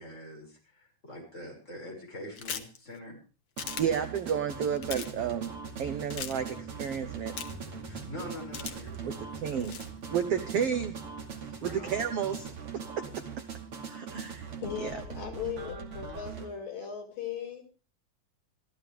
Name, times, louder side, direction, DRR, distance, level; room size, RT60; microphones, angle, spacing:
voice 1, 0.0-3.2 7.9-9.6 11.5-11.9, left 1 dB, 20° left, 0 dB, 6.6 m, -44 dB
sound 1, 2.4-2.8 3.6-3.8 4.7-5.1 6.1-6.3 7.4-7.7 8.5-9.0 9.6-9.9, left 7 dB, 55° left, 1.6 m, -37 dB
sound 2, 3.6-16.5, right 6 dB, 45° right, 3.1 m, -41 dB
voice 2, 3.8-5.5 5.8-7.3 9.0-9.1 9.4-9.8 10.1-11.0 11.6-12.5 12.7-13.1 13.9-14.5 14.8-14.9, right 8 dB, 70° right, 9 dB, 1.5 m, -31 dB
sound 3, 4.5-12.5, equal, 10° right, 3.6 m, -51 dB
voice 3, 14.6-17.6, left 8 dB, 75° left, 1 dB, 7.1 m, -38 dB
25.5 x 14.5 x 3.5 m, 0.38 s
omnidirectional pair, 3.9 m